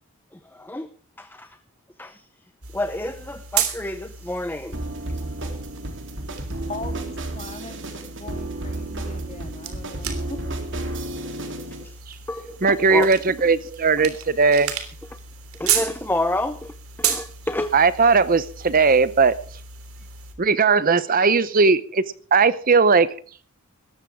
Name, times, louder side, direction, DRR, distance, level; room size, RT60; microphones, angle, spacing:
voice 1, 0.3-0.9 1.2-1.6 2.0-2.2 2.7-4.8 11.8-12.0 12.3-13.1 15.6-17.8, left 1 dB, 10° left, 10 dB, 0.8 m, -29 dB
sound 1, 2.6-20.3, right 9 dB, 75° right, 3.2 m, -33 dB
sound 2, 4.7-11.8, right 1 dB, 55° right, 3.3 m, -32 dB
voice 2, 6.7-10.4, left 2 dB, 30° left, 5 dB, 3.3 m, -39 dB
voice 3, 12.6-14.7 17.7-19.4 20.4-22.0 22.3-23.1, right 4 dB, 40° right, 16 dB, 0.7 m, -18 dB
20.0 x 14.5 x 3.6 m, 0.43 s
head